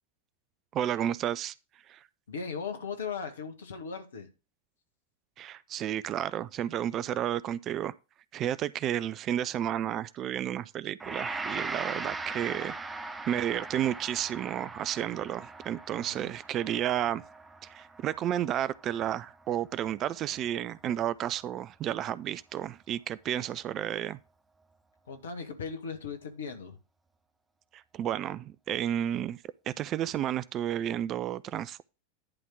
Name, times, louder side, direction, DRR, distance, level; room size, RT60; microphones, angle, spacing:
voice 1, 0.7-1.5 1.9-2.0 5.4-7.9 8.3-12.8 13.3-17.2 17.6-24.2 27.7-29.4 29.7-31.8, right 11 dB, 30° right, 0.4 m, -32 dB
voice 2, 2.3-4.3 15.9-16.3 25.1-26.8, left 5 dB, 65° left, 1.8 m, -38 dB
Gong, 11.0-20.2, right 3 dB, 10° right, 0.8 m, -40 dB
11.0 x 3.6 x 6.0 m
figure-of-eight pair, 90°, 0 cm